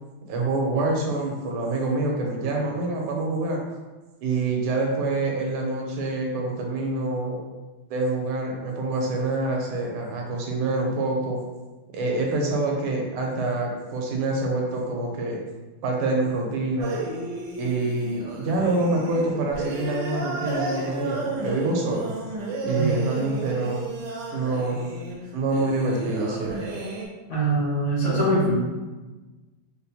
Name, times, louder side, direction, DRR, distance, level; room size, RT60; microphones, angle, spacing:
voice 1, 0.2-3.6 4.2-7.4 7.9-11.4 11.9-15.4 15.8-17.0 17.6-22.1 22.6-23.8 24.3-24.9 25.3-26.6, right 2 dB, 85° right, 0 dB, 1.6 m, -26 dB
sound 1, 16.8-27.1, right 2 dB, 70° right, 1.0 m, -33 dB
voice 2, 27.3-28.6, right 2 dB, 75° left, -8 dB, 2.1 m, -23 dB
4.3 x 2.2 x 2.7 m, 1.2 s
omnidirectional pair, 2.3 m